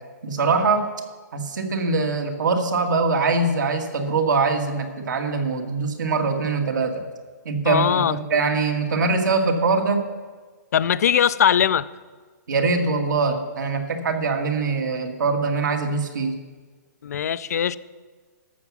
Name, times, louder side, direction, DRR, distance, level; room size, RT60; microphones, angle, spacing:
voice 1, 0.2-0.9 1.3-7.0 7.4-10.0 12.5-16.3, right 4 dB, 80° right, 4 dB, 1.8 m, -23 dB
voice 2, 7.6-8.2 10.7-11.9 17.0-17.8, left 9 dB, 60° left, 17 dB, 0.4 m, -20 dB
12.0 x 7.2 x 6.0 m, 1.4 s
hypercardioid pair, 165°, 10 cm